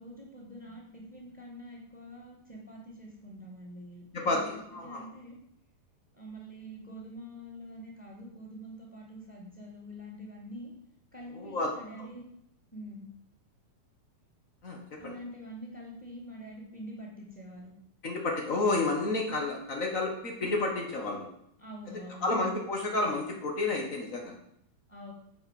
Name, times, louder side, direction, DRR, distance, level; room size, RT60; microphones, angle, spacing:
voice 1, 0.0-4.5 4.8-5.4 6.1-10.7 11.1-12.3 12.7-13.1 15.0-17.7 21.6-22.5 24.9-25.1, equal, 5° left, -3 dB, 2.7 m, -45 dB
voice 2, 4.1-5.1 11.3-11.7 14.6-15.1 18.0-21.3 22.2-24.3, left 2 dB, 90° left, 1 dB, 0.7 m, -30 dB
9.6 x 7.8 x 7.9 m, 0.75 s
omnidirectional pair, 4.3 m